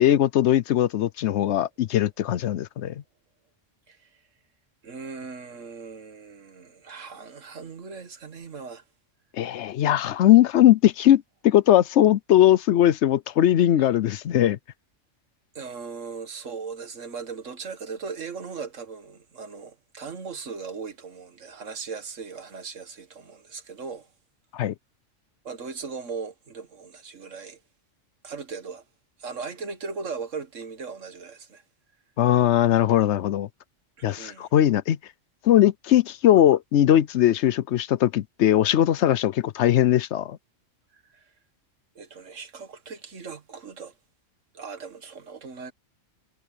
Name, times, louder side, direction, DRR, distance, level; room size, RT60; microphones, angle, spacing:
voice 1, 0.0-3.0 9.3-14.6 24.5-24.7 32.2-33.5 34.0-35.0 35.4-40.4, left 12 dB, 70° left, 0.9 m, -20 dB
voice 2, 3.9-4.2 4.8-8.8 13.8-13.9 15.6-24.1 25.4-27.6 28.2-28.8 29.2-31.6 34.0-34.5 40.9-41.3 42.0-43.9 44.5-45.7, right 5 dB, 80° right, 1.9 m, -38 dB
omnidirectional pair, 1.3 m